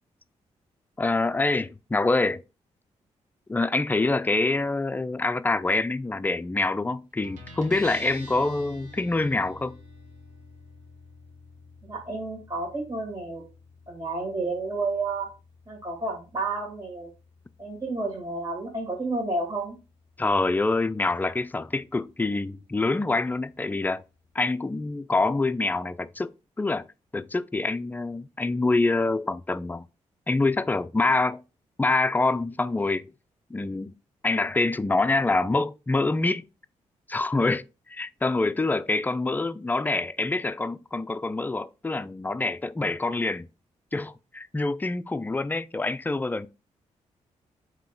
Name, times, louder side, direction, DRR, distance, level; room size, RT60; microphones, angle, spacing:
voice 1, 1.0-2.4 3.5-9.8 20.2-24.0 24.3-26.3 26.6-26.9 27.1-29.9 30.3-31.4 31.8-33.1 33.5-33.9 34.2-36.4 37.1-43.5 43.9-46.5, left 3 dB, 15° left, 0.3 m, -26 dB
Guitar, 7.2-24.4, left 1 dB, 70° right, 1.1 m, -50 dB
voice 2, 11.8-13.4 13.9-15.3 15.7-17.1 17.6-19.8, right 3 dB, 35° right, 1.8 m, -31 dB
3.7 x 2.8 x 3.6 m
supercardioid pair, 55°, 13 cm